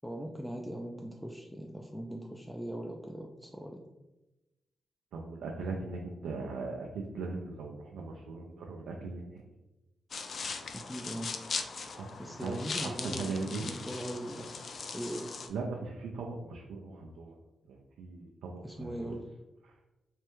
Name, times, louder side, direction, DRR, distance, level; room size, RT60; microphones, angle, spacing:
voice 1, 0.0-3.8 10.7-11.3 12.2-14.5 14.9-15.3 18.6-19.2, equal, ahead, 1 dB, 0.4 m, -40 dB
voice 2, 5.1-9.4 12.0-12.1 12.4-13.7 15.5-17.3 17.7-19.2 19.6-19.7, right 3 dB, 90° right, 0 dB, 0.4 m, -39 dB
sound 1, 10.1-15.5, left 4 dB, 60° left, 0.4 m, -39 dB
3.3 x 3.2 x 3.0 m, 1.0 s
cardioid pair, 55°, 0 cm